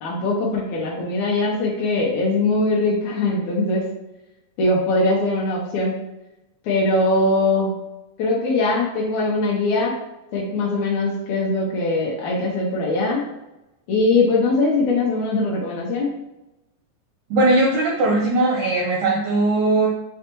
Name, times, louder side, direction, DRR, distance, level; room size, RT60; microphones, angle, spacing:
voice 1, 0.0-3.8 4.6-5.9 6.6-7.8 8.2-10.0 10.3-13.2 13.9-16.1, left 2 dB, 85° left, -4 dB, 1.6 m, -21 dB
voice 2, 17.3-19.9, right 2 dB, 80° right, -2 dB, 1.7 m, -19 dB
6.2 x 2.2 x 2.9 m, 0.94 s
omnidirectional pair, 4.2 m